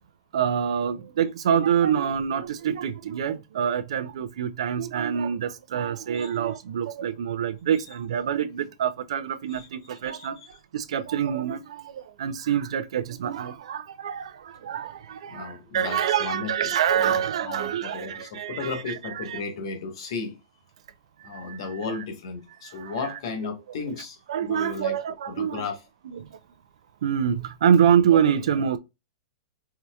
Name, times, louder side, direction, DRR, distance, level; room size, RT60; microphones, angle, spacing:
voice 1, 0.3-10.4 10.7-19.4 21.3-21.8 22.8-23.5 24.3-25.6 26.1-26.2 27.0-28.8, right 8 dB, 70° right, 0.6 m, -26 dB
voice 2, 10.1-10.5 15.3-20.4 21.2-25.0 25.3-25.8, left 4 dB, 55° left, 1.3 m, -35 dB
4.7 x 2.7 x 2.3 m
hypercardioid pair, 160°, 3 cm